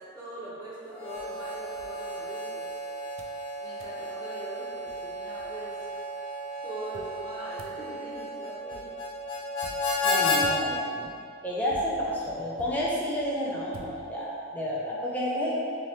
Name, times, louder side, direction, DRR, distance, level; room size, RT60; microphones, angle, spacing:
voice 1, 0.0-2.7 3.5-5.9 6.6-9.0, right 1 dB, 20° right, -14 dB, 1.3 m, -42 dB
Harmonica, 0.9-10.4, left 2 dB, 55° left, 0.5 m, -33 dB
sound 1, 1.2-2.7 3.2-3.4 3.8-4.0 4.6-4.7 4.9-6.0 6.9-14.5, right 2 dB, 75° right, 0.4 m, -51 dB
voice 2, 10.0-11.1 11.4-15.6, equal, 5° left, -6 dB, 0.4 m, -30 dB
2.9 x 2.7 x 3.1 m, 2.4 s
head